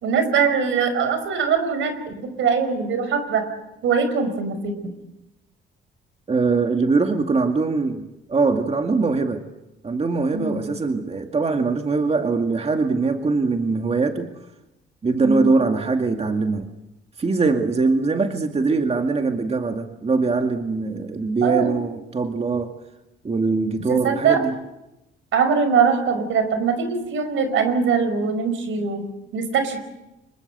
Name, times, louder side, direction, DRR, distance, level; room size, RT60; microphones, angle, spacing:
voice 1, 0.0-3.4 3.8-4.7 10.3-10.6 15.2-15.5 21.4-21.8 23.9-24.4 25.3-29.1 29.3-29.8, right 6 dB, 80° right, 9 dB, 5.2 m, -22 dB
voice 2, 6.3-9.4 9.8-14.3 15.0-16.7 17.2-22.7 23.2-24.5, right 4 dB, 30° right, 5 dB, 2.2 m, -22 dB
26.5 x 23.0 x 8.0 m, 0.93 s
cardioid pair, 90°, 20 cm